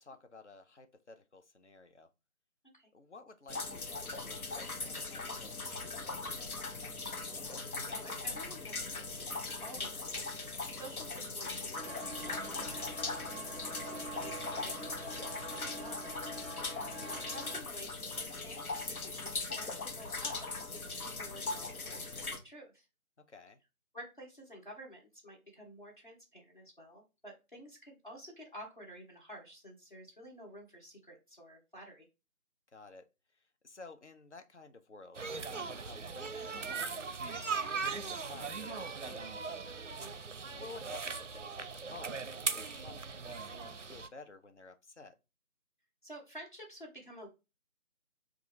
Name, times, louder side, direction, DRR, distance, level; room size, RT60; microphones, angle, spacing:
voice 1, 0.0-2.1 2.9-6.6 16.5-16.8 23.3-23.6 32.7-33.1 33.3-39.6 40.5-45.1, left 3 dB, 55° left, 0.6 m, -54 dB
sound 1, 3.5-22.4, left 3 dB, 75° left, 1.0 m, -40 dB
voice 2, 7.3-9.3 9.6-16.0 16.5-22.9 23.9-32.1 40.0-40.2 46.0-47.3, equal, 35° left, 1.0 m, -51 dB
sound 2, 11.7-17.6, right 1 dB, ahead, 0.5 m, -45 dB
sound 3, 35.1-44.1, right 4 dB, 55° right, 0.5 m, -39 dB
3.7 x 2.4 x 4.6 m
figure-of-eight pair, 165°, 44 cm